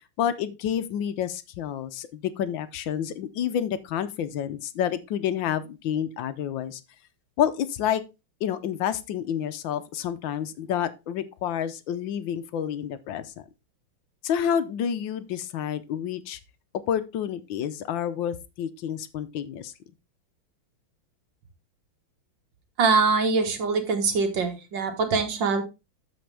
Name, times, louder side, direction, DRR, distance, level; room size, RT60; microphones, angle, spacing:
voice 1, 0.2-6.8 7.4-8.0 8.4-13.3 14.2-16.4 16.9-19.7, left 9 dB, 75° left, 1.4 m, -29 dB
voice 2, 22.8-25.6, right 4 dB, 65° right, 2.0 m, -23 dB
13.0 x 4.3 x 3.4 m
omnidirectional pair, 2.2 m